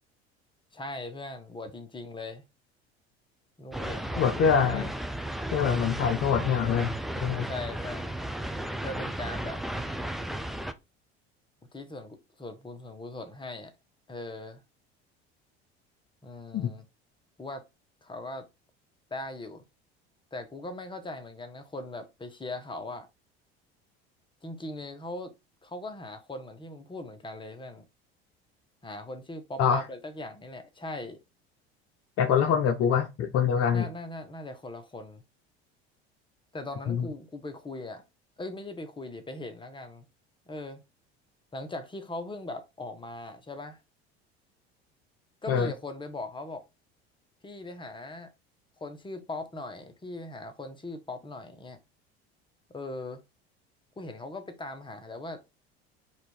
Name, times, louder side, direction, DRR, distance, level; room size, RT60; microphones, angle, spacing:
voice 1, 0.7-2.4 3.6-4.9 7.5-8.1 8.8-9.6 11.7-13.7 14.1-14.6 16.2-16.8 17.4-17.6 18.0-18.5 19.1-19.6 20.3-23.1 24.4-25.3 25.6-27.8 28.8-31.2 33.7-35.2 36.5-38.0 38.4-40.0 40.5-40.8 41.5-43.8 45.4-46.6 47.4-48.3 48.8-51.8 52.7-53.2 54.0-55.4, left 2 dB, 15° left, 1.1 m, -39 dB
sound 1, 3.7-10.7, right 1 dB, ahead, 0.4 m, -34 dB
voice 2, 4.2-4.9 5.5-7.5 16.5-16.7 29.6-29.8 32.2-33.9 36.9-37.1 45.5-45.7, left 7 dB, 50° left, 0.7 m, -25 dB
4.4 x 2.6 x 4.1 m
hypercardioid pair, 70°, 32 cm